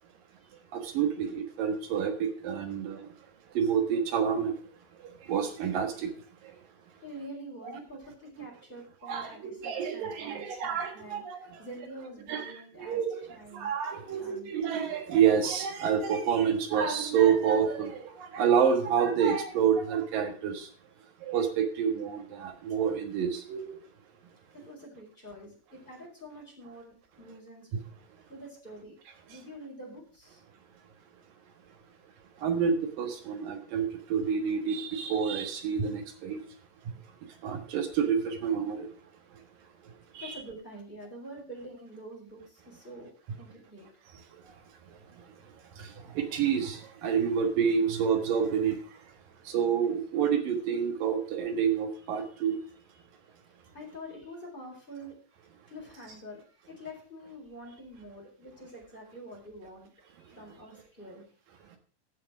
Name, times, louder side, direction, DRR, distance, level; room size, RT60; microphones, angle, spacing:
voice 1, 0.7-3.0 3.6-4.5 5.3-6.1 7.6-7.7 9.0-11.4 12.3-13.2 13.5-20.7 21.2-23.7 32.4-36.4 37.4-38.9 40.1-40.4 45.8-45.9 46.2-48.8 49.5-52.6, right 7 dB, 80° right, 3.2 m, -28 dB
voice 2, 7.0-13.0 13.3-13.7 14.2-14.5 24.6-27.7 28.3-29.0 29.3-30.4 40.2-43.9 53.7-55.2 55.7-59.9 60.3-61.2, equal, 15° left, 4.2 m, -46 dB
14.5 x 5.9 x 5.9 m
omnidirectional pair, 3.9 m